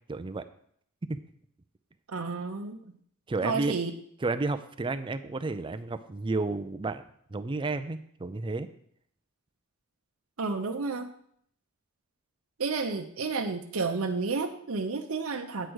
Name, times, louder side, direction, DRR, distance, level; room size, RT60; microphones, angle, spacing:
voice 1, 0.1-0.4 1.1-1.2 3.3-3.8 4.2-7.0 7.3-8.7, right 3 dB, 25° right, 10 dB, 0.4 m, -31 dB
voice 2, 2.1-2.8 3.4-3.9 10.4-11.1 12.6-15.7, right 4 dB, 70° right, 5 dB, 0.8 m, -31 dB
9.1 x 4.9 x 6.3 m, 0.65 s
head